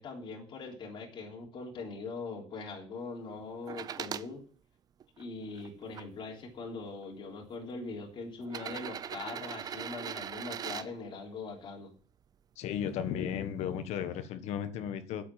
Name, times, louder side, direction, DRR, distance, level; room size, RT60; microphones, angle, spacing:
voice 1, 0.0-4.4 5.2-11.9, left 3 dB, 45° left, -1 dB, 3.4 m, -41 dB
sound 1, 3.7-4.3 5.0-6.0 7.0-7.1 8.4-10.9 12.7-12.8, right 8 dB, 35° right, 0.5 m, -40 dB
voice 2, 12.6-15.2, left 9 dB, 75° left, 11 dB, 1.5 m, -35 dB
9.1 x 7.9 x 7.6 m, 0.42 s
cardioid pair, 150°, 11 cm